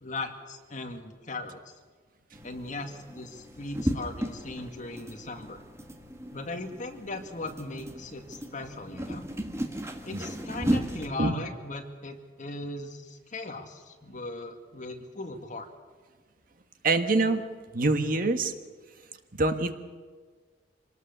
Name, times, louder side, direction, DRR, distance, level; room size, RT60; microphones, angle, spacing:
voice 1, 0.0-1.6 2.4-5.6 6.3-9.3 10.0-15.7, left 2 dB, 45° left, 4 dB, 2.2 m, -38 dB
sound 1, 2.3-11.1, right 1 dB, 15° right, 1.8 m, -35 dB
voice 2, 16.8-17.4 17.7-18.5 19.4-19.7, right 2 dB, 50° right, 8 dB, 1.5 m, -25 dB
25.5 x 19.0 x 6.8 m, 1.5 s
head